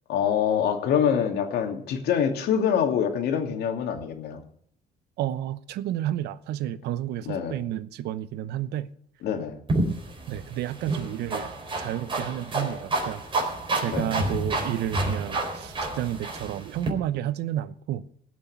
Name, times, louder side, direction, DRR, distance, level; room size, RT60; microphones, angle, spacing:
voice 1, 0.1-4.4 7.3-7.5 9.2-9.6 13.9-14.1, left 8 dB, 70° left, 2.7 m, -25 dB
voice 2, 5.2-8.9 10.3-11.5 11.8-18.1, right 12 dB, 80° right, 0.9 m, -31 dB
sound 1, 9.7-16.9, right 2 dB, 30° right, 4.3 m, -29 dB
18.0 x 6.3 x 9.3 m
cardioid pair, 110°, 17 cm